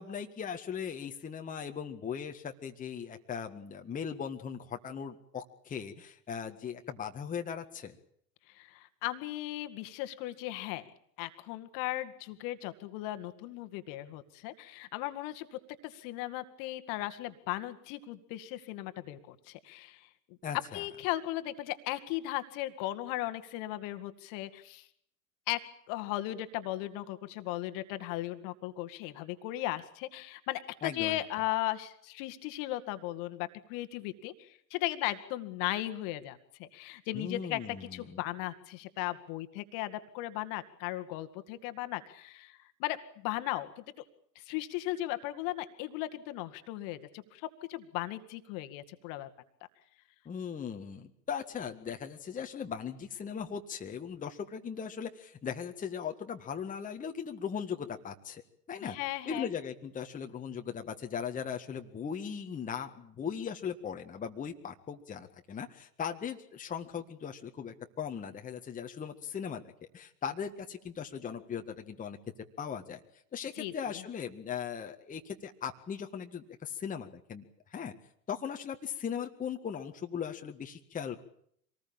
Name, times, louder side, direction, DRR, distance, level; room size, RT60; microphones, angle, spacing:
voice 1, 0.0-8.0 20.4-20.8 30.8-31.2 37.1-38.1 50.3-58.4 58.7-59.0 59.3-69.6 69.9-72.2 72.6-73.0 73.3-77.9 78.3-81.2, left 7 dB, 15° left, 4 dB, 1.8 m, -38 dB
voice 2, 8.5-10.8 11.2-20.1 20.7-24.9 25.5-25.6 25.9-37.6 37.9-43.0 43.2-43.8 44.4-49.3 58.8-59.5 73.6-74.0, left 16 dB, 40° left, 10 dB, 2.0 m, -37 dB
25.5 x 19.5 x 8.8 m, 0.68 s
figure-of-eight pair, 95°, 49 cm